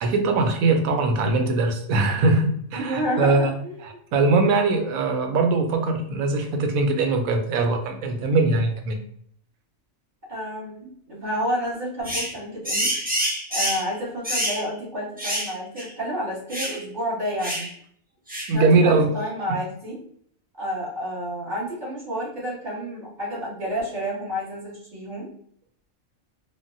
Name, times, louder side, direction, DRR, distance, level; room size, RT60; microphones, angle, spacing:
voice 1, 0.0-9.0 18.5-19.1, right 3 dB, 90° right, 5 dB, 1.0 m, -21 dB
voice 2, 2.7-3.5 3.9-4.0 10.3-12.9 13.5-17.6 18.5-20.0 20.6-25.3, equal, 35° right, -7 dB, 1.3 m, -30 dB
sound 1, 12.0-12.3 12.6-13.9 14.2-14.6 15.2-15.5 15.8-15.9 16.5-16.8 17.4-17.7 18.3-18.5, equal, 15° right, 0.3 m, -26 dB
3.4 x 2.1 x 2.5 m, 0.65 s
omnidirectional pair, 1.4 m